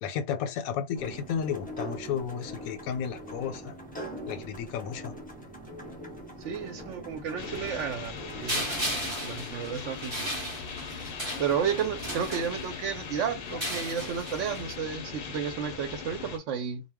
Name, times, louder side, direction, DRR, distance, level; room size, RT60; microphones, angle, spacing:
voice 1, 0.0-3.7 4.3-5.1 13.5-13.6, left 8 dB, 85° left, 1.0 m, -33 dB
sound 1, 0.9-9.1, right 1 dB, 10° left, 0.4 m, -42 dB
voice 2, 6.4-10.3 11.4-16.8, right 7 dB, 70° right, 0.8 m, -32 dB
sound 2, 7.4-16.4, left 6 dB, 60° left, 0.6 m, -40 dB
sound 3, 8.5-12.9 13.5-14.7, right 1 dB, 25° right, 0.6 m, -35 dB
2.2 x 2.1 x 3.4 m
omnidirectional pair, 1.4 m